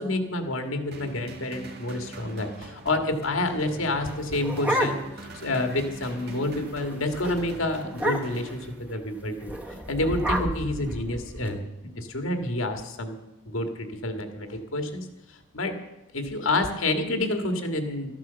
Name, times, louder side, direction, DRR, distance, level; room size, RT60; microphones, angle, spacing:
voice 1, 0.0-5.0 5.3-9.5 9.9-15.8 16.1-18.1, left 2 dB, 80° left, 6 dB, 1.8 m, -29 dB
sound 1, 0.9-9.2, right 2 dB, 50° right, 1.8 m, -43 dB
sound 2, 4.1-5.3 5.7-5.8 6.1-6.4 6.7-6.9 7.2-7.4 7.9-8.5 9.4-11.5, equal, 5° right, 1.0 m, -30 dB
13.0 x 11.0 x 6.9 m, 0.99 s
head